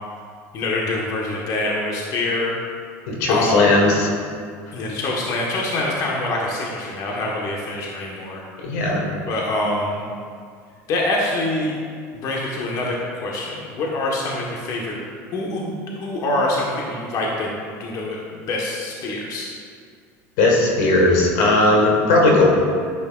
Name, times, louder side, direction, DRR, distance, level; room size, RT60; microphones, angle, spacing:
voice 1, 0.5-2.5 3.3-3.6 4.7-8.4 8.7-8.9 9.3-10.0 10.9-11.7 12.1-15.0 15.3-17.5 17.8-19.5, left 2 dB, 50° left, -3 dB, 1.4 m, -25 dB
voice 2, 3.1-4.1 8.6-9.0 20.4-22.5, left 2 dB, 75° left, -1 dB, 1.8 m, -17 dB
10.5 x 8.3 x 2.5 m, 2.1 s
supercardioid pair, 100°, 8 cm